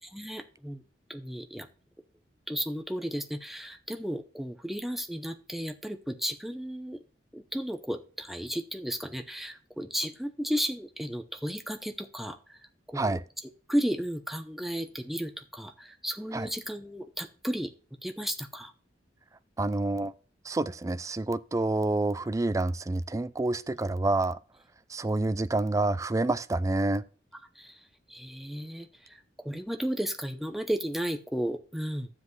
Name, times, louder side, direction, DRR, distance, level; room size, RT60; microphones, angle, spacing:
voice 1, 0.1-0.8 1.1-1.7 2.5-7.0 7.3-12.4 12.9-13.2 13.7-17.7 18.0-18.7 27.6-27.7 28.1-28.9 29.4-32.1, equal, ahead, 0.7 m, -34 dB
voice 2, 19.6-20.1 20.4-24.4 24.9-27.0, right 2 dB, 20° right, 0.3 m, -28 dB
12.0 x 7.6 x 3.2 m
head